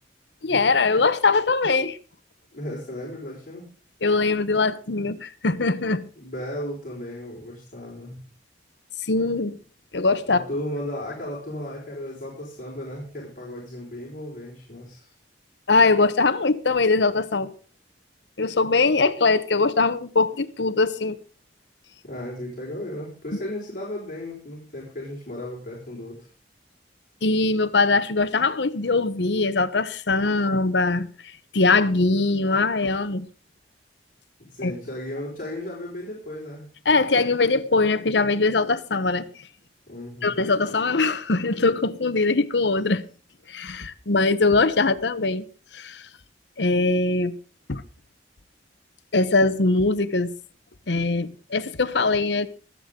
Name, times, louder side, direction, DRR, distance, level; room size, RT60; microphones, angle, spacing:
voice 1, 0.4-2.0 4.0-6.1 9.0-9.6 9.9-10.4 15.7-17.5 18.4-21.2 27.2-33.3 34.6-34.7 36.8-39.5 40.2-43.0 43.5-45.4 45.7-46.0 46.6-47.4 47.7-47.8 49.1-50.3 50.9-52.5, left 3 dB, 80° left, 1.0 m, -22 dB
voice 2, 2.5-3.7 6.2-8.2 10.3-15.1 22.0-26.3 34.5-36.7 39.9-40.4, left 1 dB, 50° left, 5.1 m, -35 dB
24.5 x 8.3 x 3.8 m
head